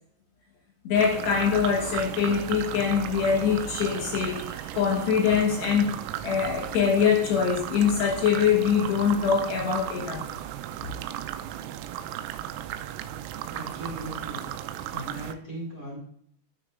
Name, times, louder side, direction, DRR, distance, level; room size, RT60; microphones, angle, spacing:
voice 1, 0.8-6.0 6.2-10.3, left 7 dB, 70° left, 2.9 m, -24 dB
sound 1, 0.9-15.3, right 11 dB, 85° right, 2.9 m, -35 dB
voice 2, 13.5-14.4 14.9-16.0, right 1 dB, 35° right, 1.6 m, -38 dB
13.0 x 6.2 x 2.4 m
omnidirectional pair, 5.9 m